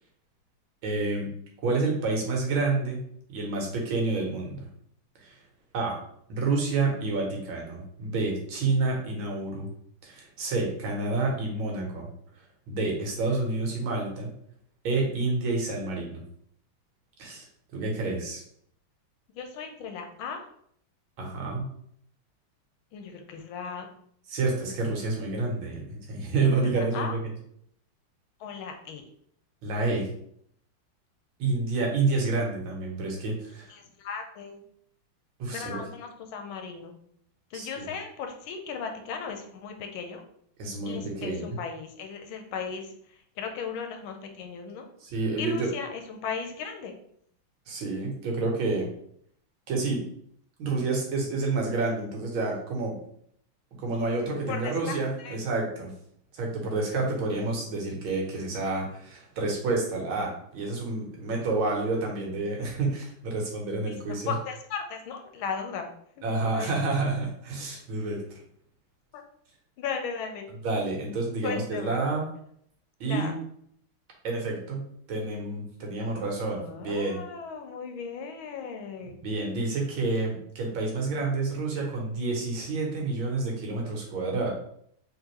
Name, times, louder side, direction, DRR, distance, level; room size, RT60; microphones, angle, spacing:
voice 1, 0.8-1.3 1.6-3.0 3.3-4.7 5.2-5.4 5.7-6.0 6.3-9.7 10.0-12.1 12.7-14.3 14.8-16.2 17.2-17.5 17.7-18.4 21.2-21.7 24.3-27.1 29.6-30.1 31.4-33.7 35.4-35.8 37.5-37.9 40.6-41.6 45.0-45.7 47.7-48.9 49.7-50.0 50.6-52.9 53.8-55.9 56.3-64.3 66.2-68.2 70.6-72.3 73.0-73.4 74.2-77.2 79.2-84.5, right 3 dB, 75° right, -1 dB, 1.7 m, -29 dB
voice 2, 19.3-20.5 22.9-23.9 26.4-27.1 28.4-29.0 33.7-34.6 35.5-36.9 37.5-40.2 40.8-44.9 45.4-47.0 54.5-55.4 63.9-64.0 64.2-65.9 66.2-66.3 66.5-66.7 69.1-69.2 69.8-70.5 71.4-72.0 73.0-73.3 76.5-79.2, left 6 dB, 85° left, 5 dB, 1.4 m, -37 dB
3.6 x 3.4 x 3.0 m, 0.67 s
omnidirectional pair, 2.2 m